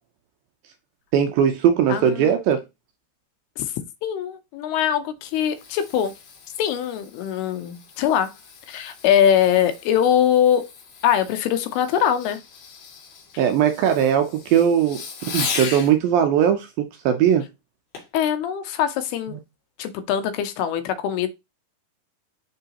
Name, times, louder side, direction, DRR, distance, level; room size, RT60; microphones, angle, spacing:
voice 1, 1.1-2.6 13.4-17.4, right 9 dB, 75° right, 2.2 m, -19 dB
voice 2, 1.9-2.4 3.6-3.7 4.0-6.1 6.6-8.3 8.7-10.7 11.0-12.4 18.1-19.4 19.8-21.3, left 9 dB, 80° left, 2.7 m, -22 dB
Fireworks, 4.9-15.9 17.9-18.2 18.8-18.9, left 5 dB, 65° left, 3.9 m, -37 dB
10.5 x 3.9 x 2.9 m
omnidirectional pair, 4.7 m